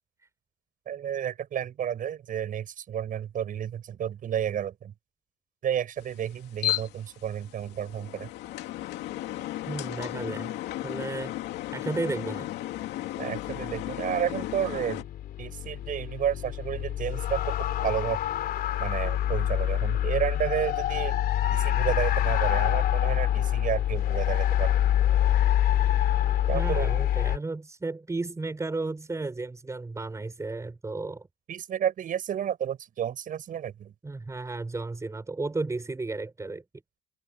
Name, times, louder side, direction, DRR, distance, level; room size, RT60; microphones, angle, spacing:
voice 1, 0.9-4.9 5.6-8.3 13.2-15.0 15.4-18.2 18.8-21.2 21.5-24.7 26.5-26.9 31.5-33.9, right 9 dB, 55° right, 7.7 m, -31 dB
sound 1, 6.0-15.0, left 14 dB, 85° left, 2.8 m, -35 dB
voice 2, 9.7-10.6 10.8-11.3 11.7-12.5 26.5-31.3 34.0-36.6, right 3 dB, 15° right, 7.0 m, -33 dB
sound 2, 13.4-27.4, left 11 dB, 65° left, 3.4 m, -26 dB
cardioid pair, 110°, 17 cm